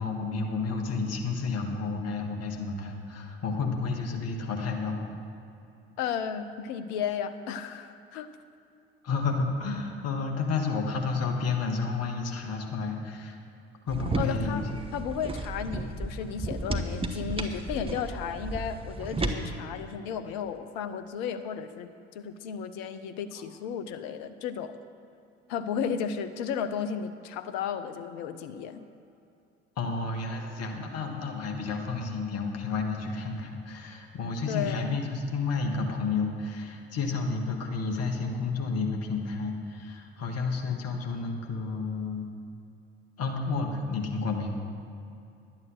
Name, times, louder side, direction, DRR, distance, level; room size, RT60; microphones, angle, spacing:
voice 1, 0.0-5.1 9.0-13.4 13.9-14.8 29.8-42.3 43.2-44.5, left 4 dB, 45° left, 2 dB, 1.6 m, -31 dB
voice 2, 6.0-8.3 14.2-14.7 14.9-24.8 25.5-28.9 34.5-34.9, left 7 dB, 60° left, 10 dB, 0.7 m, -34 dB
sound 1, 13.9-19.4, right 2 dB, 15° right, 1.1 m, -33 dB
11.0 x 8.5 x 6.3 m, 2.6 s
figure-of-eight pair, 60°, 34 cm